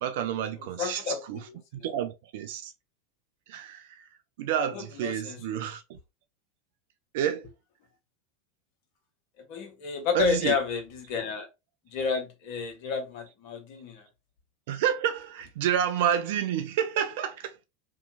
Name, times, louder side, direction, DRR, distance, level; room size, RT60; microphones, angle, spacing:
voice 1, 0.0-1.0 1.3-1.4 1.8-2.7 3.5-3.8 4.4-5.8 7.1-7.5 10.1-10.6 14.7-17.5, right 9 dB, 60° right, 0.4 m, -29 dB
voice 2, 0.6-1.9 4.7-5.4 9.5-11.5 11.9-14.0, left 6 dB, 55° left, 0.9 m, -31 dB
2.7 x 2.3 x 2.8 m
figure-of-eight pair, 85°, 0 cm